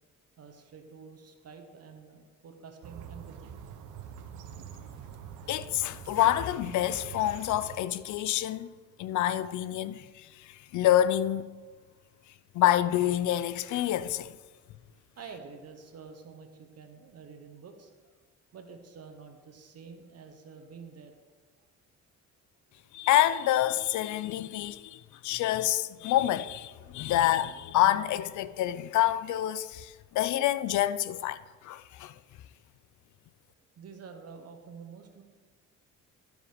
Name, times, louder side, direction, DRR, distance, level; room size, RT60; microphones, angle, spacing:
voice 1, 0.4-3.6 12.1-12.3 15.2-18.1 18.5-21.2 33.7-35.2, right 5 dB, 55° right, 1.1 m, -48 dB
sound 1, 2.8-7.8, right 8 dB, 90° right, 0.8 m, -45 dB
voice 2, 5.5-8.7 9.0-11.5 12.5-14.4 22.9-32.2, left 12 dB, 75° left, 0.5 m, -27 dB
12.0 x 5.0 x 5.1 m
cardioid pair, 90°, 30 cm